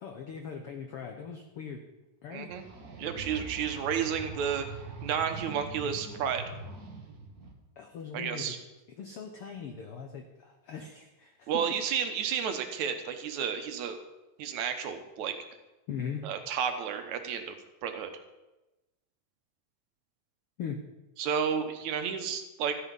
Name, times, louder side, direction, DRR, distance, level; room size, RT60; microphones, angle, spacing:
voice 1, 0.0-1.8 2.2-2.5 7.8-8.6 9.0-11.7 15.9-16.3 20.6-20.8, left 6 dB, 85° left, 4 dB, 1.2 m, -40 dB
voice 2, 2.3-2.6 3.0-4.7 5.0-6.4 8.1-8.6 11.5-14.0 14.4-15.4 16.2-17.6 17.8-18.1 21.2-22.8, right 7 dB, 65° right, 7 dB, 2.2 m, -31 dB
sound 1, 2.5-7.5, right 3 dB, 50° right, 1.1 m, -43 dB
14.0 x 10.0 x 5.4 m, 1.0 s
omnidirectional pair, 4.0 m